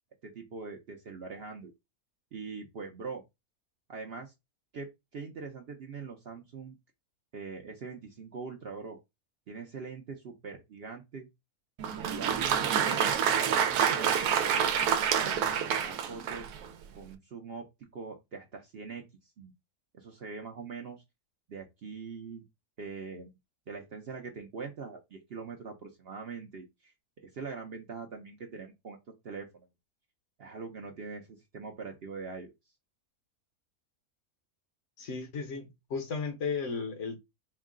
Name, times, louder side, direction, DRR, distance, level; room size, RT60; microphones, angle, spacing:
voice 1, 0.2-1.7 2.3-3.2 3.9-4.3 4.7-6.8 7.3-9.0 9.5-11.3 11.8-14.1 14.4-14.7 15.1-16.5 16.9-17.6 17.9-19.0 19.4-19.5 19.9-21.0 21.5-22.4 22.8-23.3 23.7-26.9 27.2-29.0 29.2-29.7 30.4-32.5, right 5 dB, 55° right, 0.7 m, -42 dB
Applause, 11.8-16.7, right 8 dB, 90° right, 1.1 m, -27 dB
voice 2, 35.0-37.2, left 5 dB, 60° left, 1.1 m, -35 dB
4.5 x 2.1 x 3.6 m
omnidirectional pair, 1.5 m